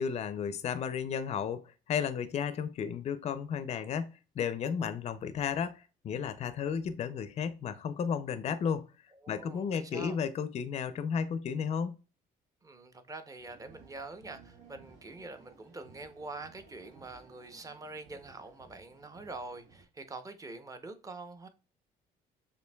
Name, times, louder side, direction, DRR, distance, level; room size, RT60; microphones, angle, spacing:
voice 1, 0.0-8.9 9.3-12.0, left 7 dB, 40° left, 0.4 m, -33 dB
voice 2, 9.2-10.2 12.6-21.5, right 3 dB, 20° right, 0.6 m, -45 dB
sound 1, 13.4-19.8, right 4 dB, 85° right, 1.9 m, -58 dB
6.8 x 2.6 x 2.2 m
cardioid pair, 110°, 17 cm